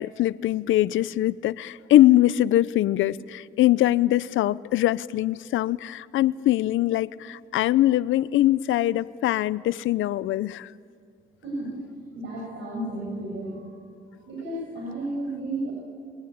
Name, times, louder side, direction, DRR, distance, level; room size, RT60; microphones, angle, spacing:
voice 1, 0.0-10.7, left 14 dB, 80° left, 18 dB, 0.6 m, -22 dB
voice 2, 11.4-11.8 12.1-13.7 14.1-15.7, right 1 dB, 75° right, -2 dB, 7.5 m, -33 dB
26.5 x 23.0 x 8.7 m, 2.2 s
cardioid pair, 90°, 20 cm